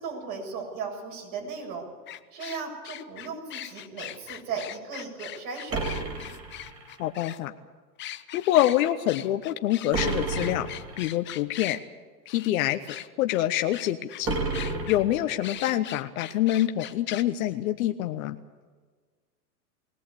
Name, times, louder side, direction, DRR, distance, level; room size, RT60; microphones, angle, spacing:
voice 1, 0.0-1.8 2.3-5.9, right 5 dB, 45° right, 1 dB, 7.5 m, -36 dB
sound 1, 2.1-7.4 8.0-11.8 12.3-12.5 12.9-13.4 13.7-14.2 14.5-15.0 15.4-17.2, left 13 dB, 20° left, 0.8 m, -40 dB
sound 2, 5.7-7.1 9.9-11.1 14.2-15.6, right 3 dB, 25° right, 4.9 m, -31 dB
voice 2, 7.0-7.5 8.3-10.7 11.0-11.8 12.3-12.8 13.2-14.4 14.9-18.4, left 13 dB, 55° left, 8 dB, 1.1 m, -26 dB
21.0 x 17.5 x 8.4 m, 1.5 s
hypercardioid pair, 120°, 50 cm